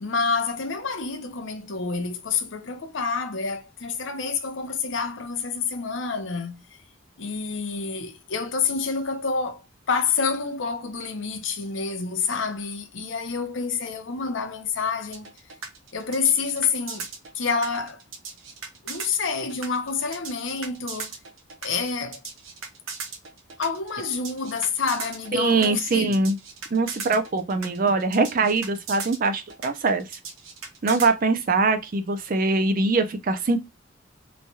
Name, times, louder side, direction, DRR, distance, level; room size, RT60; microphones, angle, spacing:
voice 1, 0.0-6.6 7.2-15.3 15.9-17.1 17.3-18.0 18.8-21.2 21.6-22.2 23.6-26.2, left 5 dB, 65° left, 0.6 m, -28 dB
sound 1, 15.1-31.1, right 5 dB, 80° right, 0.8 m, -37 dB
voice 2, 25.3-26.4 26.7-30.2 30.8-33.6, right 3 dB, 45° right, 0.4 m, -23 dB
3.1 x 2.2 x 2.7 m
head